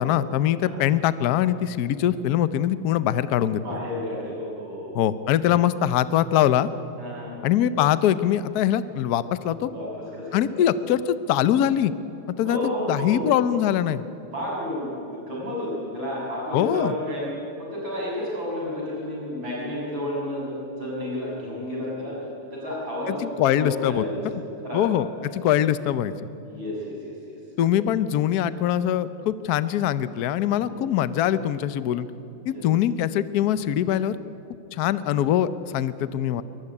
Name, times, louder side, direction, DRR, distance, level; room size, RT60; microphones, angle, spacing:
voice 1, 0.0-3.6 4.9-6.7 7.4-9.7 10.3-11.9 12.4-12.6 12.9-14.1 16.5-16.9 23.1-24.0 24.7-25.1 25.3-26.1 27.6-32.1 32.5-34.2 34.7-36.4, left 11 dB, 60° left, 14 dB, 1.0 m, -23 dB
voice 2, 3.6-5.0 7.0-7.4 9.7-10.7 12.4-13.3 14.3-17.3 17.7-22.1 22.5-24.2 24.6-24.9 25.2-25.3 26.5-27.4 30.7-30.8 32.5-32.6, left 1 dB, 65° right, -4 dB, 7.8 m, -31 dB
23.5 x 19.0 x 9.9 m, 2.9 s
omnidirectional pair, 2.3 m